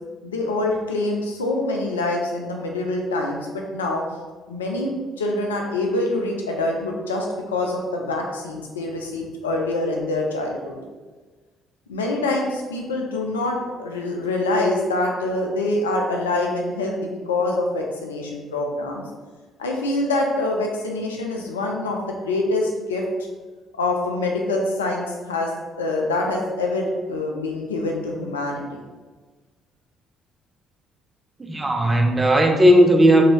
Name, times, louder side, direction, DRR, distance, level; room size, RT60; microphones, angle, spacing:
voice 1, 0.2-4.0 4.5-10.7 11.9-19.0 19.6-22.0 22.2-23.0 23.8-25.5 25.8-28.8, left 2 dB, 85° left, 0 dB, 0.3 m, -25 dB
voice 2, 31.4-33.2, equal, 20° right, 4 dB, 0.4 m, -16 dB
2.7 x 2.6 x 2.9 m, 1.3 s
hypercardioid pair, 50°, 0 cm